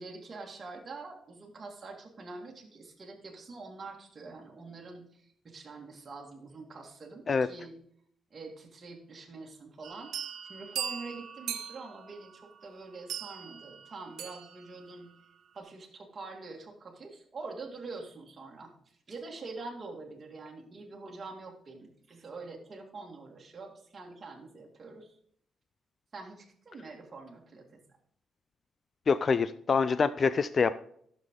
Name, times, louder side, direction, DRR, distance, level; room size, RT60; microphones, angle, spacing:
voice 1, 0.0-7.8 8.3-10.1 10.5-15.1 15.5-18.7 19.1-25.1 26.1-27.7, right 3 dB, 25° right, 0 dB, 1.9 m, -45 dB
sound 1, 9.8-14.9, right 9 dB, 75° right, 1.2 m, -40 dB
voice 2, 29.1-30.8, left 5 dB, 30° left, 14 dB, 0.3 m, -26 dB
14.5 x 6.8 x 3.7 m, 0.66 s
cardioid pair, 175°, 0 cm